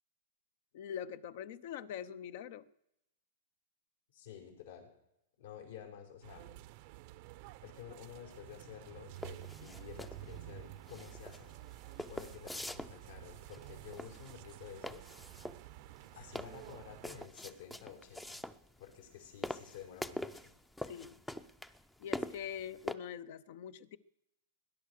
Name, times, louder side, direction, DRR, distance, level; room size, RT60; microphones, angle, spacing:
voice 1, 0.7-2.7 20.8-21.2 22.0-24.0, left 9 dB, 55° left, 16 dB, 0.8 m, -43 dB
voice 2, 4.1-4.9 5.4-6.5 7.6-11.5 12.1-15.1 16.2-18.4 18.8-20.5, left 9 dB, 75° left, 1 dB, 5.5 m, -51 dB
sound 1, 6.2-17.3, right 15 dB, 45° right, 0.6 m, -51 dB
sound 2, 9.2-23.0, left 1 dB, 5° left, 0.6 m, -44 dB
20.0 x 10.5 x 6.6 m, 0.85 s
hypercardioid pair, 145°, 0 cm